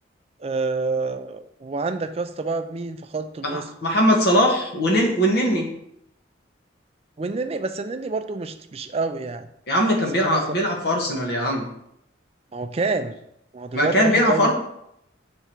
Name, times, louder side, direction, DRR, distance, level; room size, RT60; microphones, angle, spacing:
voice 1, 0.4-3.7 7.2-9.5 10.1-10.6 12.5-13.2 13.5-14.5, right 3 dB, 30° right, 9 dB, 0.4 m, -28 dB
voice 2, 3.4-5.7 9.7-11.7 13.7-14.5, equal, 55° left, 0 dB, 1.3 m, -20 dB
6.8 x 3.5 x 4.5 m, 0.76 s
head